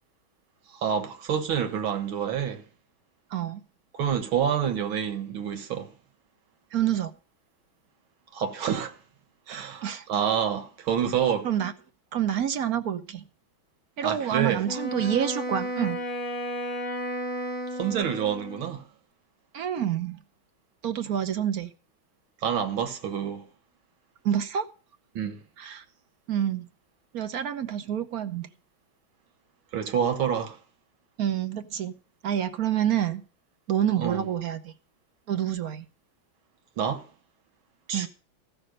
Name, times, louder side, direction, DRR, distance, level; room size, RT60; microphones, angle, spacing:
voice 1, 0.7-2.6 3.9-5.9 8.3-8.9 9.5-11.5 14.0-14.7 17.7-18.8 22.4-23.4 25.2-25.4 29.7-30.6 34.0-34.2 36.8-37.1 37.9-38.1, right 8 dB, 75° right, 2.1 m, -27 dB
voice 2, 3.3-3.6 6.7-7.1 9.8-10.0 11.4-11.7 12.1-13.2 14.0-16.0 19.5-20.2 20.8-21.7 24.2-24.7 25.6-25.8 26.3-26.7 27.1-28.5 31.2-31.9 32.2-33.2 33.7-34.7 35.3-35.9 37.9-38.1, right 10 dB, 55° right, 1.1 m, -27 dB
Wind instrument woodwind instrument, 14.6-18.8, equal, 20° left, 1.1 m, -33 dB
14.5 x 6.0 x 6.4 m
omnidirectional pair, 2.3 m